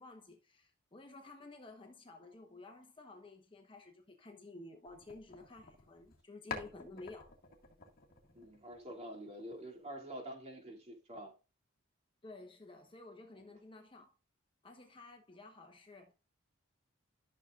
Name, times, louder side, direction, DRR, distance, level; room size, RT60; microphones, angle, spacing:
voice 1, 0.0-7.3 12.2-14.1 14.6-16.1, left 2 dB, 25° left, 1.0 m, -53 dB
sound 1, 4.9-6.2 6.5-9.1, left 5 dB, 45° left, 2.0 m, -49 dB
voice 2, 8.3-11.4, right 1 dB, 30° right, 2.7 m, -47 dB
13.0 x 6.5 x 2.5 m
head